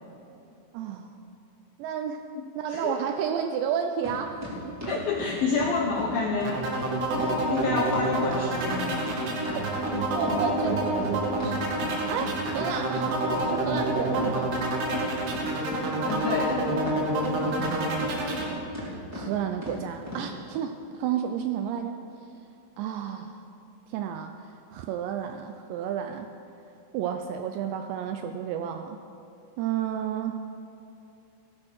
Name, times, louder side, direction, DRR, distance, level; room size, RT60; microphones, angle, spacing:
voice 1, 0.7-1.1 1.8-2.2 2.6-5.0 9.6-9.7 10.1-11.6 12.1-13.1 13.5-14.5 17.6-18.4 19.1-22.0 22.8-23.4 23.9-24.3 24.7-26.3 26.9-29.0 29.6-30.4, right 8 dB, 80° right, 6 dB, 2.6 m, -32 dB
voice 2, 2.3-3.0 4.9-6.6 7.1-9.0 16.0-16.6, left 4 dB, 80° left, 1 dB, 2.1 m, -29 dB
sound 1, 4.0-4.2 4.4-6.1 6.4-6.5 6.8-6.9 7.2-7.3 7.5-10.0 10.2-13.0 13.3-13.4 13.7-14.6 14.9-15.8 16.1-17.7 18.0-18.5 18.7-18.9 19.1-19.2 19.6-19.8 20.1-20.2, left 1 dB, 5° right, 2.8 m, -36 dB
sound 2, 6.5-18.5, right 2 dB, 65° right, 3.8 m, -28 dB
17.0 x 13.0 x 6.3 m, 2.8 s
omnidirectional pair, 5.6 m